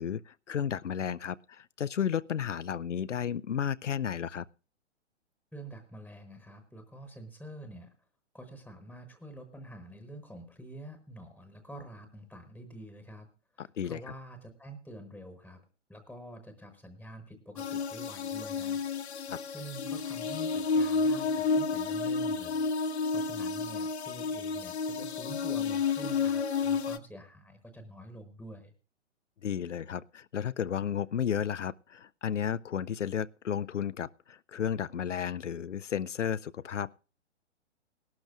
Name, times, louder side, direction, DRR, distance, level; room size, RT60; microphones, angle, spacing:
voice 1, 0.0-4.5 13.6-14.0 19.3-19.4 29.4-37.0, left 8 dB, 85° left, 0.5 m, -33 dB
voice 2, 5.5-7.9 8.3-13.3 13.5-15.6 15.9-18.8 19.4-28.7, right 1 dB, ahead, 1.0 m, -47 dB
sound 1, 17.6-27.0, left 4 dB, 65° left, 0.8 m, -31 dB
19.0 x 12.0 x 2.4 m
figure-of-eight pair, 120°, 36 cm